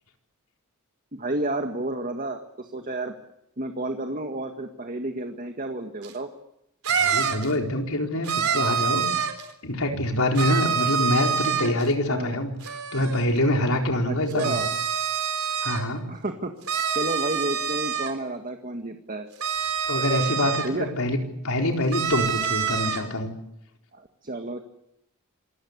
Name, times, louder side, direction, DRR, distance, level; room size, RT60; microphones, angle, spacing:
voice 1, 1.1-3.1 3.6-6.3 11.6-11.7 12.1-12.4 14.0-14.7 16.1-16.5 16.9-19.3 20.6-20.9 23.9-24.6, right 2 dB, 40° right, 5 dB, 1.8 m, -31 dB
sound 1, 6.0-6.1 6.8-7.5 8.2-9.5 10.3-11.9 12.6-13.3 14.3-15.8 16.7-18.1 19.4-20.7 21.9-23.0, right 7 dB, 75° right, 3.7 m, -26 dB
voice 2, 7.0-9.1 9.6-12.5 12.9-14.6 15.6-16.1 19.9-23.3, left 1 dB, 75° left, 2 dB, 4.4 m, -25 dB
27.0 x 21.0 x 8.2 m, 0.82 s
head